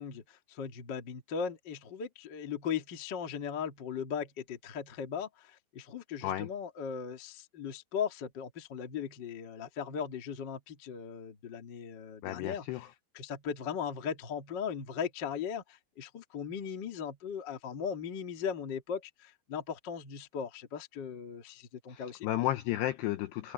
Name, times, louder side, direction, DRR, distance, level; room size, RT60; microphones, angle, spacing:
voice 1, 0.0-12.9 13.1-22.3, left 7 dB, 65° left, 1.1 m, -38 dB
voice 2, 12.2-12.9 21.9-23.5, left 14 dB, 85° left, 2.5 m, -33 dB
omnidirectional pair, 5.6 m